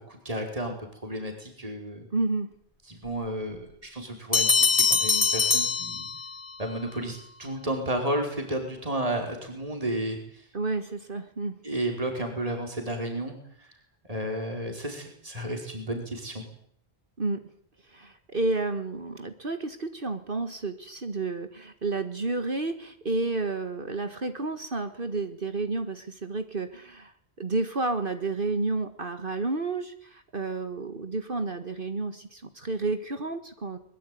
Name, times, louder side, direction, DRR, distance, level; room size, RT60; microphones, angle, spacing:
voice 1, 0.1-0.7 1.0-2.1 2.9-6.1 6.6-10.4 11.6-13.7 14.1-16.4, right 1 dB, 35° right, 2 dB, 5.0 m, -32 dB
voice 2, 2.1-2.5 10.5-11.6 17.2-17.5 17.9-33.8, right 3 dB, 50° right, 8 dB, 1.9 m, -31 dB
Bell, 4.3-6.6, left 4 dB, 30° left, 2.9 m, -23 dB
23.0 x 22.0 x 9.4 m, 0.63 s
omnidirectional pair, 1.1 m